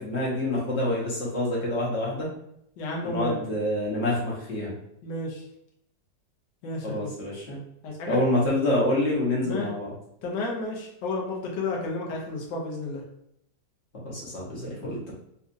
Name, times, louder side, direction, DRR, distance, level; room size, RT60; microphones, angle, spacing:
voice 1, 0.0-2.3 3.0-4.7 6.8-7.6 8.1-9.9 14.0-15.1, left 1 dB, 45° left, -5 dB, 1.1 m, -27 dB
voice 2, 2.8-3.4 5.0-5.4 6.6-7.1 7.8-8.2 9.4-9.7 10.2-13.0, left 2 dB, 80° left, -1 dB, 1.5 m, -32 dB
4.2 x 2.4 x 2.5 m, 0.76 s
omnidirectional pair, 1.9 m